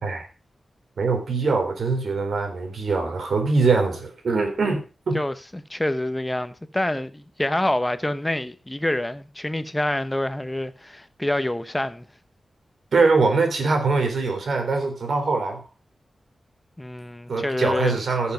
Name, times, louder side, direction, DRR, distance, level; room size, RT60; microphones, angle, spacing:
voice 1, 1.0-5.2 12.9-15.7 17.3-18.3, right 4 dB, 75° right, 3.5 m, -23 dB
voice 2, 5.1-12.1 16.8-18.0, left 1 dB, 10° left, 0.8 m, -26 dB
15.0 x 7.1 x 5.1 m
wide cardioid pair, 145°, 0 cm